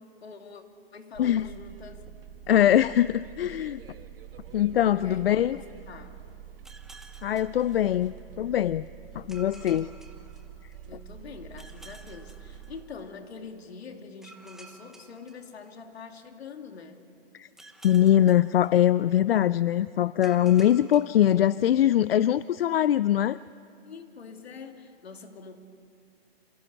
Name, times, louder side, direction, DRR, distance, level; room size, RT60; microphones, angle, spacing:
voice 1, 0.2-0.6 0.9-2.0 2.5-2.9 4.9-6.2 9.3-9.9 10.9-17.0 23.8-25.6, left 5 dB, 80° left, 4 dB, 2.9 m, -45 dB
sound 1, 1.1-12.8, right 9 dB, 60° right, 1.7 m, -46 dB
voice 2, 1.2-1.5 2.5-3.8 4.5-5.6 7.2-8.9 9.2-9.9 17.3-17.5 17.8-23.4, left 11 dB, 65° left, 17 dB, 0.5 m, -22 dB
sound 2, 6.6-8.4 9.3-11.0 11.6-13.3 14.2-16.2 17.6-19.4 20.2-22.0, right 2 dB, ahead, 0.8 m, -53 dB
27.0 x 16.5 x 9.9 m, 2.6 s
hypercardioid pair, 160°, 31 cm